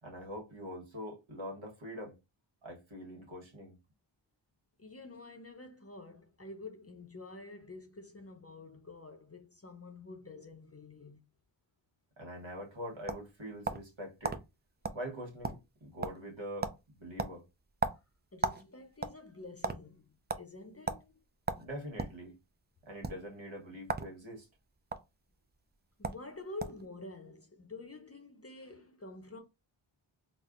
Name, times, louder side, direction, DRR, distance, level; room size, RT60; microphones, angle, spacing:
voice 1, 0.0-2.2 2.6-3.8 12.2-14.4 14.9-17.4 21.5-22.4 22.8-24.5, equal, 65° right, 1.3 m, -44 dB
voice 2, 4.8-11.3 17.9-18.0 18.3-21.1 26.0-29.4, left 3 dB, 30° left, 0.6 m, -48 dB
sound 1, 12.5-13.9 14.2-14.4 14.8-15.0 15.3-15.8 16.0-16.3 16.6-16.8 17.2-18.6 18.9-19.8 20.3-20.4 20.9-21.0 21.5-22.2 22.9-23.1 23.8-24.1 24.4-25.0 25.7-25.8 26.0-26.2 26.6-26.9, right 4 dB, 25° right, 0.3 m, -35 dB
4.1 x 2.1 x 2.4 m
wide cardioid pair, 50°, 49 cm